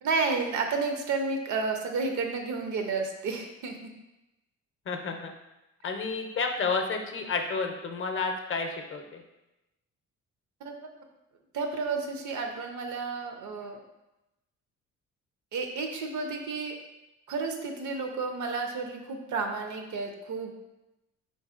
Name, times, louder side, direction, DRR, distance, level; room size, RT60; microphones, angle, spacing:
voice 1, 0.0-3.8 10.6-10.9 11.5-13.8 15.5-16.8 17.3-20.6, right 4 dB, 75° right, 4 dB, 0.7 m, -31 dB
voice 2, 4.9-5.3 5.8-9.2, left 4 dB, 45° left, 4 dB, 0.6 m, -31 dB
3.9 x 3.6 x 2.4 m, 0.97 s
cardioid pair, 90°, 30 cm